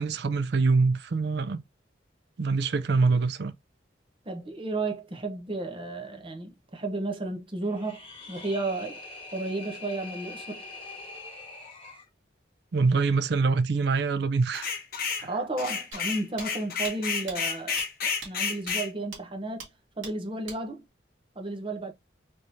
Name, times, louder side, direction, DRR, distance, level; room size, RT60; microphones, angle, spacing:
voice 1, 0.0-1.6 2.4-3.5 12.7-14.7 15.2-15.3, right 4 dB, 55° right, 0.4 m, -24 dB
voice 2, 4.3-9.0 9.3-10.6 15.2-17.8 18.2-19.7 20.0-20.8 21.4-21.9, right 2 dB, 30° right, 0.8 m, -33 dB
sound 1, 7.6-12.1, left 3 dB, 30° left, 1.5 m, -43 dB
sound 2, 14.5-15.3 15.6-18.9, left 5 dB, 50° left, 0.8 m, -31 dB
sound 3, 15.9-16.0 16.4-16.5 16.8-16.9 17.3-17.4 17.8-17.9 18.2-18.3 18.7-18.8 19.1-19.2 19.6-19.7 20.0-20.1 20.5-20.6, right 5 dB, 85° right, 1.5 m, -41 dB
3.5 x 3.1 x 2.6 m
head